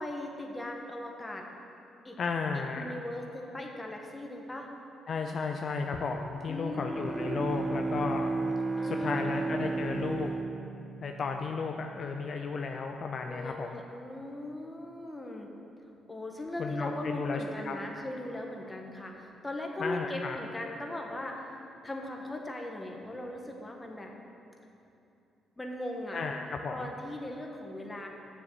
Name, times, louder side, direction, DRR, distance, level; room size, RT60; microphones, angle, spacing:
voice 1, 0.0-1.5 2.0-2.2 2.5-4.7 6.5-7.5 8.8-9.7 13.2-15.5 16.1-24.1 25.6-26.2 26.7-28.1, left 1 dB, 15° left, 1 dB, 1.3 m, -39 dB
voice 2, 2.2-2.9 5.1-8.3 8.8-10.3 11.0-13.8 16.6-17.8 19.8-20.4 26.1-26.9, left 4 dB, 50° left, 3 dB, 0.5 m, -34 dB
Bowed string instrument, 6.6-12.2, right 3 dB, 25° right, 0.4 m, -34 dB
7.0 x 6.7 x 7.6 m, 2.8 s
cardioid pair, 90°, 0 cm